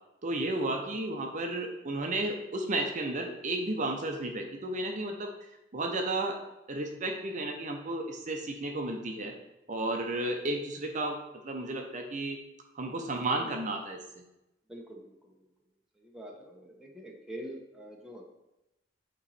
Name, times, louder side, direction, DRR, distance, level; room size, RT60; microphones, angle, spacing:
voice 1, 0.2-5.3 5.7-6.4 6.7-9.3 9.7-11.2 11.4-12.4 12.7-14.2, right 2 dB, 40° right, 2 dB, 0.6 m, -33 dB
voice 2, 14.7-15.5 16.0-18.3, equal, 5° right, -1 dB, 0.8 m, -45 dB
8.2 x 3.1 x 4.2 m, 0.92 s
head